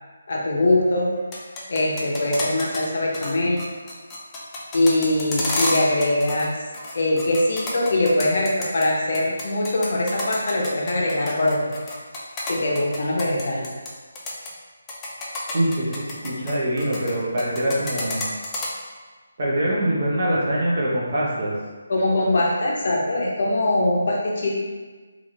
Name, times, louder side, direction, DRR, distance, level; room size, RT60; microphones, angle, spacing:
voice 1, 0.3-1.1 1.7-3.6 4.7-6.5 6.9-11.6 12.5-13.7 21.9-24.5, left 1 dB, 50° left, -3 dB, 0.6 m, -22 dB
sound 1, 1.2-2.9 3.1-3.3 3.6-6.5 6.7-8.9 9.1-13.9 14.2-14.5 14.9-17.1 17.4-18.7, left 2 dB, 10° left, 0.3 m, -30 dB
voice 2, 15.5-18.2 19.4-21.5, right 1 dB, 45° right, -5 dB, 0.7 m, -24 dB
3.1 x 2.5 x 2.7 m, 1.4 s
hypercardioid pair, 170°, 0 cm